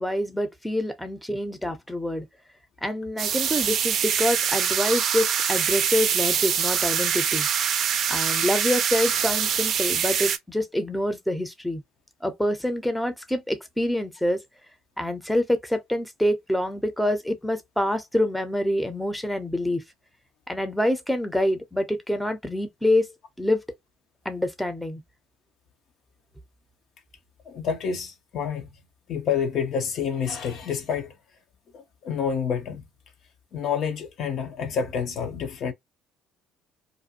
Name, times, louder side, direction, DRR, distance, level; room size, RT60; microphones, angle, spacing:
voice 1, 0.0-2.2 2.8-7.5 8.1-11.8 12.2-14.4 15.0-19.8 20.5-23.1 23.4-23.6 24.2-25.0, left 1 dB, 5° left, 0.7 m, -26 dB
sound 1, 3.2-10.4, right 8 dB, 55° right, 0.4 m, -24 dB
voice 2, 27.5-28.7 29.1-31.1 31.7-32.9 33.5-35.7, left 7 dB, 60° left, 0.6 m, -28 dB
2.5 x 2.2 x 2.7 m
hypercardioid pair, 70°, 0 cm